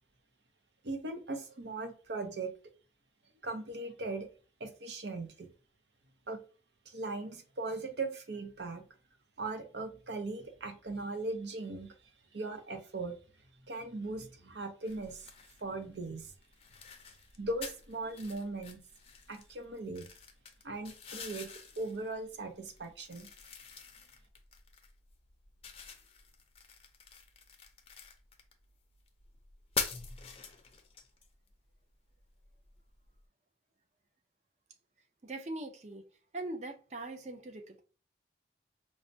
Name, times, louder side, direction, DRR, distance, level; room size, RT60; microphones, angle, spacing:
voice 1, 0.8-2.5 3.4-4.3 4.6-5.5 6.3-6.4 6.9-8.8 9.4-11.9 12.3-13.2 13.7-15.3 15.6-16.3 17.4-18.8 19.3-20.1 20.6-21.5 21.8-23.3, right 2 dB, 75° right, 0.7 m, -39 dB
sound 1, 14.8-33.3, left 6 dB, 35° left, 0.5 m, -46 dB
voice 2, 35.2-36.0 36.3-37.8, right 2 dB, 40° right, 0.5 m, -41 dB
4.7 x 2.1 x 2.7 m
head